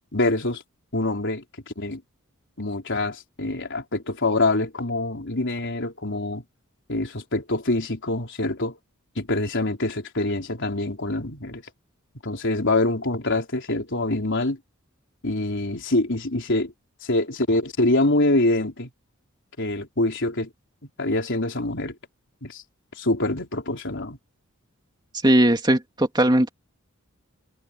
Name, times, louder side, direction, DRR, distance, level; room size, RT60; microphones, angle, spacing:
voice 1, 0.1-0.6 0.9-1.4 1.8-2.0 2.6-6.4 6.9-8.8 9.2-11.6 12.2-14.6 15.2-16.7 17.0-18.9 19.6-20.5 21.0-21.9 22.4-22.6 23.0-24.2, left 2 dB, 60° left, 4.3 m, -25 dB
voice 2, 25.2-26.5, right 1 dB, 20° right, 2.8 m, -18 dB
head